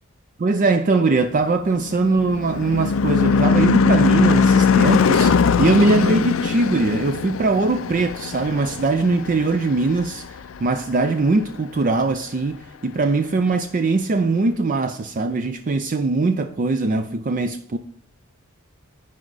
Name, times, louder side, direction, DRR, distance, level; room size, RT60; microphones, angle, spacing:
voice 1, 0.4-10.2 10.6-17.8, right 3 dB, 40° right, 0.4 m, -21 dB
Car passing by / Truck / Engine, 1.6-10.3, left 5 dB, 65° left, 0.4 m, -20 dB
9.7 x 5.0 x 4.0 m
head